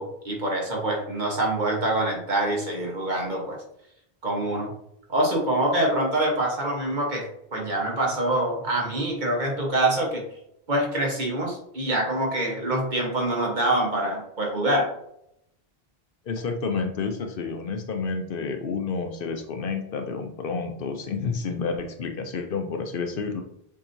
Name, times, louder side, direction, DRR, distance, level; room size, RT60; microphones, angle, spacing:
voice 1, 0.0-3.6 4.2-4.7 5.1-10.2 10.7-14.9, right 1 dB, 50° right, -1 dB, 1.3 m, -25 dB
voice 2, 16.3-23.4, left 4 dB, 65° left, 5 dB, 0.7 m, -30 dB
7.0 x 2.8 x 2.6 m, 0.75 s
omnidirectional pair, 1.1 m